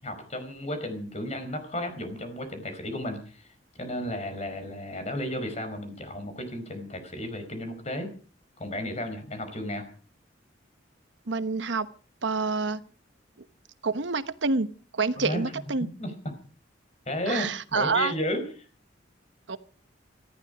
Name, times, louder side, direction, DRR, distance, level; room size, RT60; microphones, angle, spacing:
voice 1, 0.0-3.5 3.8-8.1 8.6-9.8 15.2-15.5 16.0-16.1 17.1-18.7, left 1 dB, 35° left, 7 dB, 4.8 m, -33 dB
voice 2, 11.3-11.9 12.2-12.8 13.8-15.9 17.3-18.1 19.5-19.6, right 4 dB, 70° right, 13 dB, 1.0 m, -27 dB
19.0 x 15.0 x 5.0 m, 0.41 s
head